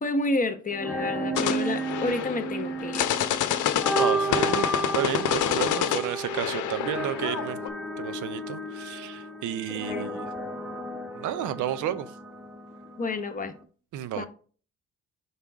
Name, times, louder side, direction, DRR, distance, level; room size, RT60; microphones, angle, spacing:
voice 1, 0.0-3.1 9.9-10.2 13.0-13.5 14.2-14.3, left 2 dB, 25° left, 1.0 m, -30 dB
sound 1, 0.7-13.6, right 2 dB, ahead, 1.1 m, -33 dB
sound 2, 1.4-7.7, left 11 dB, 80° left, 0.7 m, -28 dB
voice 2, 4.0-4.7 4.9-7.6 8.0-10.3 11.1-12.1 13.9-14.3, right 11 dB, 80° right, 0.7 m, -31 dB
5.6 x 3.7 x 4.6 m
cardioid pair, 90°, 30 cm